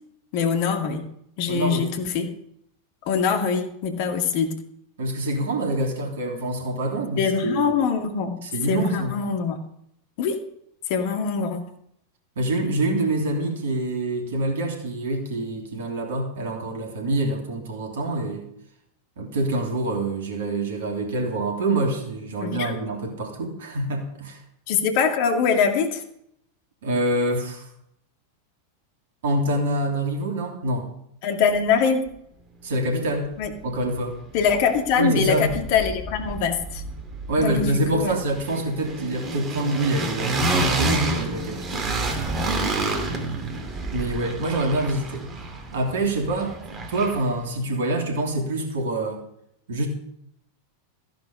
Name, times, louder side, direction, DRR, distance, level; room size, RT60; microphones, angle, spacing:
voice 1, 0.3-1.0 1.4-2.3 3.1-4.5 7.2-8.4 8.7-9.6 10.2-10.4 10.9-11.6 22.4-22.8 24.7-26.0 31.2-32.0 33.4-33.5 34.3-36.8 37.4-38.1, left 6 dB, 45° left, 5 dB, 2.2 m, -23 dB
voice 2, 1.5-1.9 5.0-7.7 8.4-9.1 12.4-18.5 19.2-24.4 26.8-27.7 29.2-30.9 32.6-33.3 33.6-34.2 35.0-35.5 37.3-42.1 43.9-45.3 45.7-49.2 49.7-49.9, right 1 dB, 60° right, 2 dB, 3.1 m, -26 dB
sound 1, 33.4-33.5 33.8-34.9 35.2-47.4, right 2 dB, 25° right, 2.8 m, -29 dB
15.0 x 10.0 x 5.2 m, 0.73 s
figure-of-eight pair, 90°, 0 cm